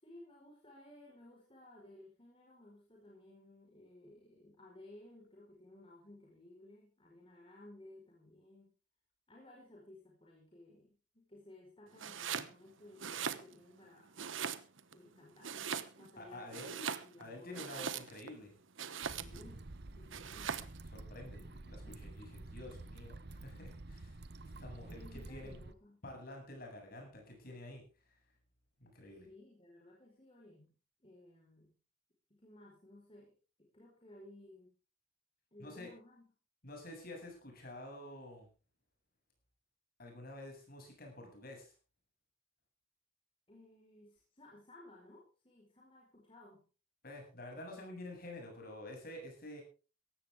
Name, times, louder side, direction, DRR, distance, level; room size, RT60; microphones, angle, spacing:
voice 1, 0.0-8.7 9.3-14.2 14.9-16.6 17.0-17.9 19.2-19.6 19.9-20.6 24.9-26.0 29.2-30.7 31.0-31.7 32.3-33.3 33.6-34.7 35.5-36.2 43.5-46.6, left 1 dB, 30° left, -2 dB, 4.9 m, -58 dB
Domestic sounds home sounds, 12.0-12.5 12.9-13.8 14.2-14.9 15.4-16.2 16.5-18.3 18.8-19.5 20.1-20.8, right 7 dB, 85° right, 1.1 m, -41 dB
voice 2, 16.2-16.9 17.2-18.5 20.9-24.2 24.6-25.6 26.0-27.8 28.8-29.3 35.6-35.9 36.6-38.5 40.0-41.7 47.0-49.6, left 1 dB, 50° left, 2 dB, 7.8 m, -49 dB
sound 1, 19.0-25.7, right 2 dB, 55° right, 0.9 m, -50 dB
17.5 x 15.0 x 3.7 m, 0.34 s
head